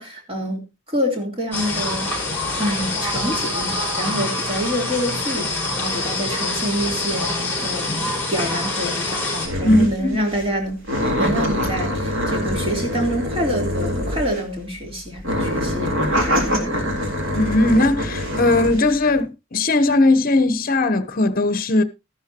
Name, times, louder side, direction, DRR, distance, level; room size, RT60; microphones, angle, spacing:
voice 1, 0.0-2.1 2.6-9.3 9.6-10.8 11.2-17.0, equal, 25° right, 3.6 m, -27 dB
sound 1, 1.5-9.5, left 2 dB, 10° left, 5.6 m, -25 dB
sound 2, 9.4-10.0 10.3-10.5 10.8-14.5 15.2-18.8, equal, 65° right, 3.7 m, -24 dB
voice 2, 9.6-10.2 17.4-21.8, left 2 dB, 45° left, 1.0 m, -18 dB
13.5 x 12.0 x 2.9 m
head